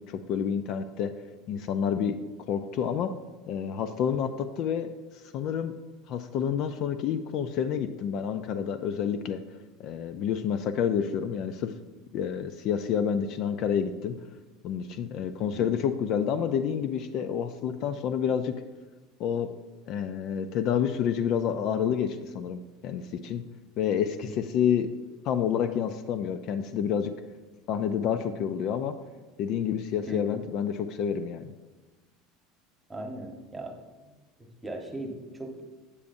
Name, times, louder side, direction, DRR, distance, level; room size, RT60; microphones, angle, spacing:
voice 1, 0.1-1.1 1.5-3.1 3.5-4.9 5.3-5.7 6.1-9.4 9.8-11.7 12.1-14.2 14.6-18.5 19.2-19.5 19.9-23.4 23.8-24.9 25.2-27.1 27.7-28.9 29.4-31.5, left 8 dB, 55° left, 10 dB, 0.4 m, -29 dB
voice 2, 30.1-30.4 32.9-33.8 34.1-35.8, right 1 dB, 10° right, 3 dB, 1.2 m, -39 dB
8.3 x 8.3 x 2.6 m, 1.2 s
supercardioid pair, 110°, 0 cm